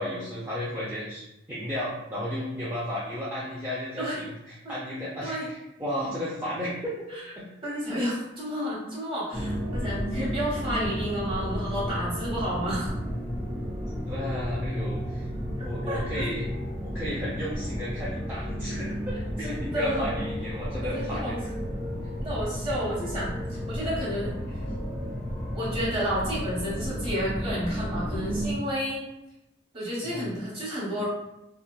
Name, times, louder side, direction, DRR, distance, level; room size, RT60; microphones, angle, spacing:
voice 1, 0.0-6.9 7.4-7.5 14.1-15.3 15.6-16.5 16.8-18.9 19.4-21.4 24.6-24.7 30.0-30.2, equal, 10° right, -9 dB, 0.4 m, -33 dB
voice 2, 7.6-12.9 15.9-16.2 19.4-20.1 20.8-21.4 22.2-24.4 25.5-29.0 29.7-31.1, equal, 30° right, -7 dB, 0.9 m, -31 dB
sound 1, 9.3-28.5, equal, 60° right, 0.9 m, -32 dB
2.7 x 2.1 x 2.2 m, 0.90 s
head